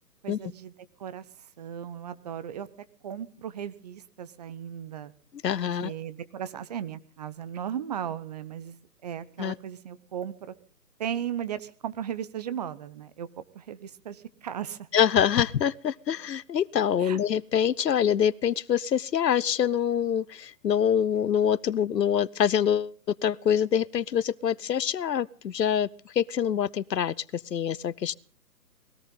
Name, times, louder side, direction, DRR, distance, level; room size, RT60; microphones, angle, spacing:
voice 1, 0.2-0.7 1.0-2.7 3.0-5.1 5.8-8.8 9.0-10.5 11.0-14.9 17.0-17.2, right 9 dB, 25° right, 0.8 m, -36 dB
voice 2, 5.4-5.9 9.4-9.5 14.9-22.9 23.2-28.1, left 8 dB, 75° left, 0.9 m, -25 dB
20.5 x 17.5 x 3.8 m
hypercardioid pair, 145°, 49 cm